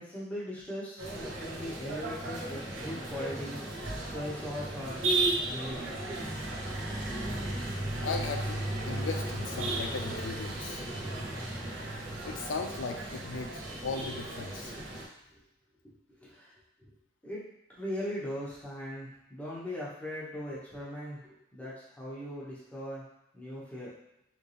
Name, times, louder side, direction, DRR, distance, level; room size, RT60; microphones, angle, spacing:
voice 1, 0.0-3.6 4.0-5.0 5.5-5.9 15.3-15.4 15.8-16.5 16.8-17.0 17.2-17.4 17.8-23.0 23.3-23.9, equal, 10° left, -7 dB, 1.2 m, -39 dB
sound 1, 1.0-15.0, right 2 dB, 75° right, 1.0 m, -35 dB
voice 2, 8.0-10.8 11.8-11.9 12.3-14.8, left 4 dB, 70° left, 4 dB, 0.4 m, -37 dB
4.1 x 3.4 x 3.4 m, 0.86 s
head